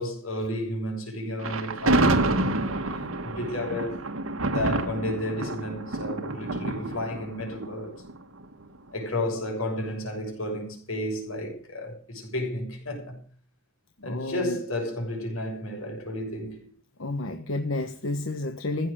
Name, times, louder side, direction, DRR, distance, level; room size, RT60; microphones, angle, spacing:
voice 1, 0.0-2.7 3.2-4.0 4.5-8.0 8.9-13.2 14.0-16.6, left 1 dB, 90° left, 6.7 m, -32 dB
Thunder, 1.4-8.6, right 2 dB, 85° right, 1.8 m, -28 dB
voice 2, 14.0-14.6 17.0-18.9, left 2 dB, 70° left, 1.3 m, -30 dB
15.5 x 9.6 x 6.8 m
head